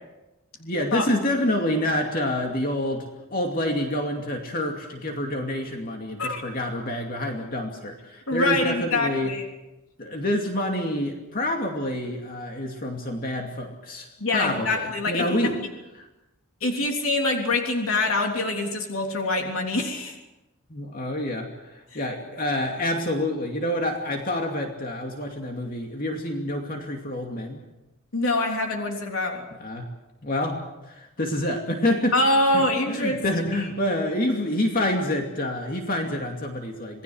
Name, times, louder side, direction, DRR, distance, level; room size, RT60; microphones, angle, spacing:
voice 1, 0.6-9.3 10.0-14.1 14.3-15.6 16.0-16.1 20.7-27.6 29.6-29.9 30.2-30.6 30.9-32.2 32.5-37.0, left 1 dB, 40° left, 2 dB, 2.6 m, -27 dB
voice 2, 8.3-9.5 14.2-15.5 16.6-20.2 21.9-22.0 28.1-29.4 32.1-33.2 33.9-34.0, left 2 dB, 70° left, 2 dB, 3.5 m, -25 dB
28.0 x 19.5 x 6.4 m, 1.0 s
head